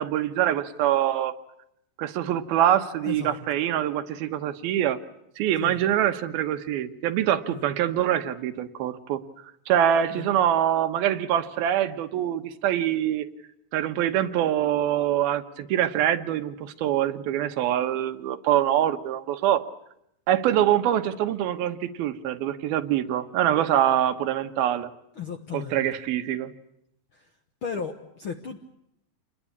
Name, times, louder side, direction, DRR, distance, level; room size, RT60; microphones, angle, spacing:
voice 1, 0.0-1.3 2.0-5.0 5.4-9.2 9.7-13.3 13.7-19.6 20.3-24.9 25.5-26.5, right 11 dB, 85° right, 9 dB, 3.1 m, -24 dB
voice 2, 3.0-3.4 5.6-5.8 7.5-7.7 10.1-10.3 25.1-25.9 27.1-27.3 27.6-28.6, left 6 dB, 55° left, 6 dB, 1.5 m, -35 dB
28.0 x 20.5 x 8.6 m, 0.78 s
omnidirectional pair, 4.3 m